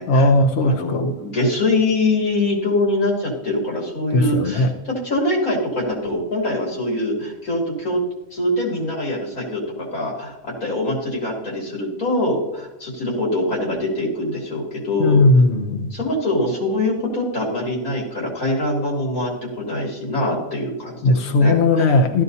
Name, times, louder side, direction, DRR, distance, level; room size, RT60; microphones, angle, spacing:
voice 1, 0.1-1.1 4.1-4.7 15.0-15.9 21.0-22.2, left 2 dB, 55° left, 5 dB, 1.0 m, -17 dB
voice 2, 0.6-8.0 8.3-15.2 15.9-22.0, left 1 dB, 80° left, -3 dB, 3.3 m, -24 dB
15.5 x 13.0 x 2.7 m, 0.97 s
omnidirectional pair, 1.5 m